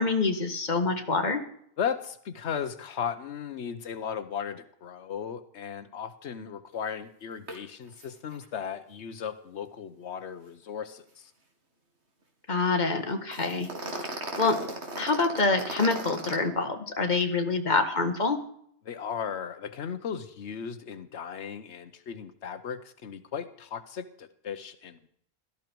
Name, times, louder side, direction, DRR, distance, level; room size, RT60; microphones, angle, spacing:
voice 1, 0.0-1.4 12.5-13.7 14.4-14.6 15.0-18.4, left 3 dB, 40° left, 6 dB, 1.8 m, -26 dB
voice 2, 1.8-11.3 18.8-25.1, left 7 dB, 85° left, 11 dB, 1.2 m, -36 dB
sound 1, 7.5-7.6 7.9-8.1 8.3-8.4 13.3-16.4, right 2 dB, 85° right, 2.7 m, -36 dB
17.5 x 13.0 x 4.6 m, 0.67 s
omnidirectional pair, 1.1 m